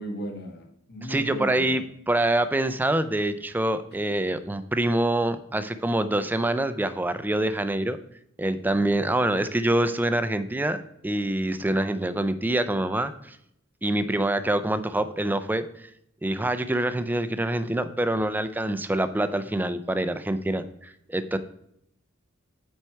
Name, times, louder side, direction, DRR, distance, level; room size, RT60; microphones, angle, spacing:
voice 1, 0.0-1.9, right 1 dB, 55° left, 1.3 m, -36 dB
voice 2, 1.1-8.0 8.4-10.8 11.0-13.4 13.8-15.9 16.2-21.4, right 1 dB, 10° right, 0.4 m, -25 dB
9.0 x 4.6 x 4.5 m
head